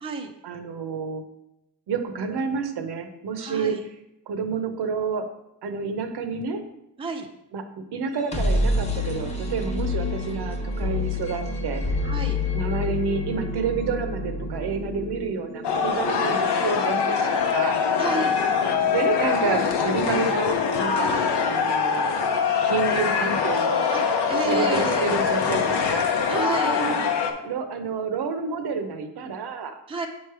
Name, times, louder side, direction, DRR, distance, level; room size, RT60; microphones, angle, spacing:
voice 1, 0.4-1.2 1.9-3.9 4.3-5.3 5.6-6.6 7.5-11.8 12.5-17.8 18.7-22.1 22.6-23.9 24.4-27.1 27.4-29.8, right 5 dB, 65° right, 8 dB, 0.8 m, -29 dB
voice 2, 3.4-3.8 7.0-7.3 12.0-12.4 18.0-18.4 21.0-21.4 23.9-25.2 26.3-26.8 29.9-30.1, right 3 dB, 15° right, 3 dB, 0.5 m, -31 dB
sound 1, 8.0-21.9, left 2 dB, 15° left, 0.9 m, -30 dB
sound 2, 15.6-27.3, left 6 dB, 70° left, 0.7 m, -23 dB
7.3 x 3.2 x 4.7 m, 0.85 s
cardioid pair, 130°, 42 cm